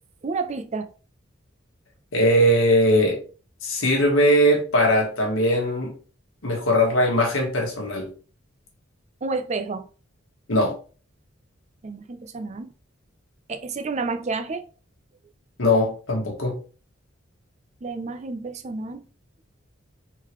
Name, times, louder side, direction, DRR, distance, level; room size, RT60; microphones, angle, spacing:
voice 1, 0.2-0.9 9.2-9.9 11.8-12.7 13.5-14.6 17.8-19.0, right 4 dB, 35° right, 0.5 m, -30 dB
voice 2, 2.1-3.2 3.6-5.9 6.4-8.1 10.5-10.7 15.6-16.6, equal, 90° left, 1.4 m, -20 dB
3.8 x 3.7 x 3.0 m
head